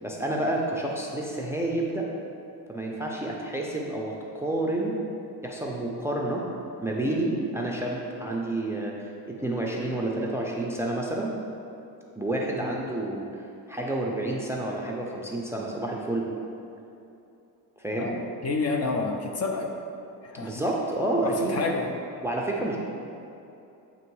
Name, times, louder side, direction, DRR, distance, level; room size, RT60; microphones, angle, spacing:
voice 1, 0.0-2.1 2.7-5.0 5.4-6.5 6.8-11.3 12.2-13.3 13.7-16.3 17.8-18.1 20.4-21.6 22.2-22.8, right 1 dB, 5° right, -2 dB, 0.4 m, -29 dB
voice 2, 18.0-19.7 20.2-20.6 21.2-21.9, left 3 dB, 40° left, 2 dB, 0.6 m, -29 dB
7.9 x 3.0 x 4.6 m, 2.7 s
cardioid pair, 125°, 38 cm